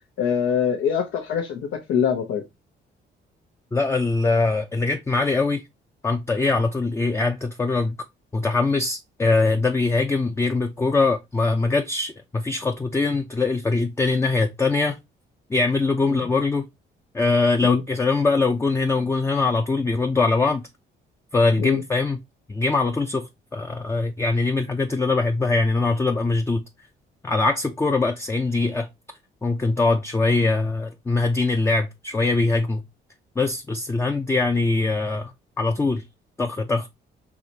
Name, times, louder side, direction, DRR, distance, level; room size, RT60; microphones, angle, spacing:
voice 1, 0.2-2.4 16.1-16.3 17.6-17.8 21.6-21.8, left 7 dB, 85° left, 0.8 m, -24 dB
voice 2, 3.7-5.6 6.0-8.0 8.3-15.0 15.5-16.7 17.1-20.6 21.3-22.2 22.5-26.6 27.2-28.9 29.4-32.8 33.4-35.3 35.6-36.0 36.4-36.9, left 3 dB, 15° left, 0.4 m, -22 dB
4.8 x 3.0 x 2.7 m
cardioid pair, 90°, 20 cm